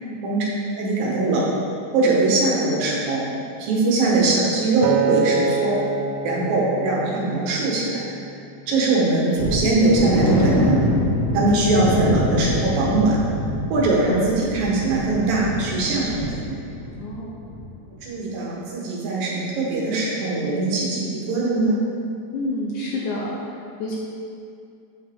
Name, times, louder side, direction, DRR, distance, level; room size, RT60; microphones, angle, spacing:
voice 1, 0.8-1.4 1.9-3.2 3.6-5.8 6.2-8.0 8.7-10.8 11.3-13.2 13.7-16.6 18.0-21.8, right 2 dB, 70° right, -4 dB, 3.0 m, -21 dB
Acoustic guitar, 4.8-9.2 9.8-10.0, right 5 dB, 90° right, 2.5 m, -27 dB
sound 1, 9.4-17.1 17.4-17.6 18.0-18.1, left 1 dB, 45° left, 1.7 m, -25 dB
voice 2, 17.0-17.3 22.3-23.3 23.8-23.9, left 2 dB, 75° left, -3 dB, 1.8 m, -28 dB
8.5 x 6.4 x 3.6 m, 2.4 s
omnidirectional pair, 4.3 m